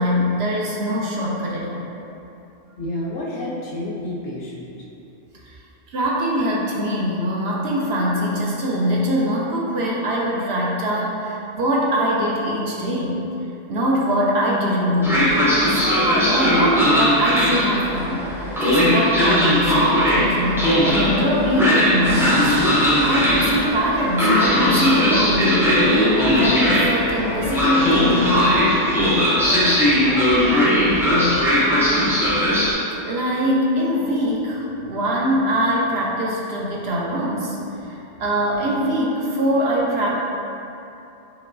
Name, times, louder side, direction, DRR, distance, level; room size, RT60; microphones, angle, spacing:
voice 1, 0.0-1.9 5.5-5.6 5.9-13.2 13.7-15.2 15.7-18.3 18.6-28.5 33.0-37.6 37.8-40.2, equal, 65° right, -4 dB, 0.8 m, -23 dB
voice 2, 2.8-4.7 29.5-31.4, left 1 dB, 60° left, -4 dB, 0.8 m, -31 dB
Train, 15.0-32.7, left 1 dB, 5° right, 0.3 m, -18 dB
sound 1, 20.7-37.9, equal, 80° left, 1.0 m, -34 dB
5.2 x 3.0 x 2.5 m, 2.8 s
omnidirectional pair, 1.3 m